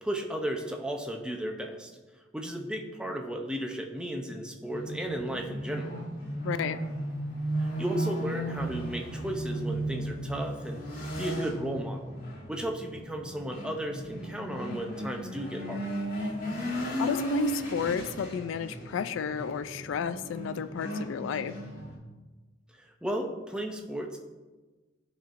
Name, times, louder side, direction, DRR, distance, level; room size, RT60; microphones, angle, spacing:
voice 1, 0.0-1.9 2.3-6.0 7.6-10.8 11.2-12.2 12.5-15.9 22.8-24.2, right 1 dB, 5° right, 2 dB, 0.6 m, -34 dB
sound 1, 4.7-22.0, right 1 dB, 45° left, 1.9 m, -35 dB
voice 2, 6.4-6.8 17.0-21.6, left 6 dB, 75° left, 13 dB, 0.3 m, -32 dB
11.0 x 4.4 x 2.5 m, 1.3 s
head